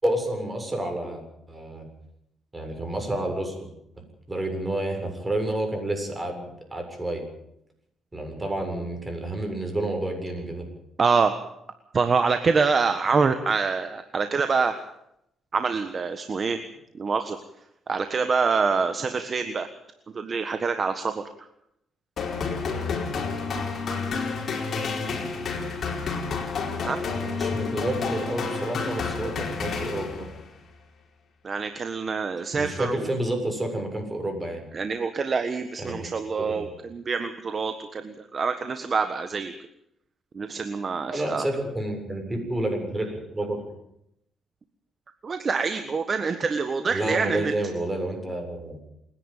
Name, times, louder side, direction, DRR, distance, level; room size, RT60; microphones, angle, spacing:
voice 1, 0.0-1.2 1.5-1.9 2.5-3.7 3.9-4.0 4.3-7.3 8.1-10.7 27.2-30.3 32.5-34.7 35.8-36.1 36.4-36.7 41.1-43.7 46.9-48.8, right 1 dB, 20° right, 3 dB, 7.3 m, -29 dB
voice 2, 11.0-11.4 11.9-14.7 15.5-16.6 16.9-17.4 17.9-19.7 20.1-21.5 26.8-27.0 31.4-33.0 34.7-39.5 40.3-41.4 45.2-47.5, right 5 dB, 40° right, 8 dB, 1.5 m, -25 dB
sound 1, 22.2-30.5, left 4 dB, 55° left, 4.6 m, -30 dB
28.5 x 10.5 x 9.1 m, 0.78 s
cardioid pair, 90°, 0 cm